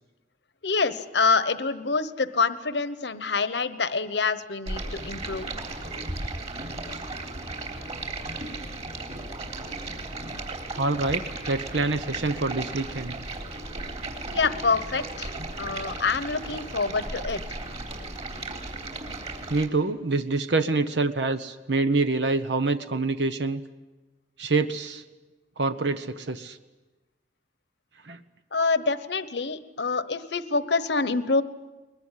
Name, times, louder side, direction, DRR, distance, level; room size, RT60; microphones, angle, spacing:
voice 1, 0.6-5.5 14.3-17.4 28.5-31.4, left 4 dB, 70° left, 13 dB, 1.1 m, -26 dB
Stream, 4.7-19.7, right 2 dB, 40° right, 3.6 m, -35 dB
voice 2, 10.8-13.1 19.5-23.6 24.4-25.0 25.6-26.6 28.0-28.2, right 3 dB, 75° right, 9 dB, 1.0 m, -26 dB
22.0 x 21.0 x 9.9 m, 1.2 s
head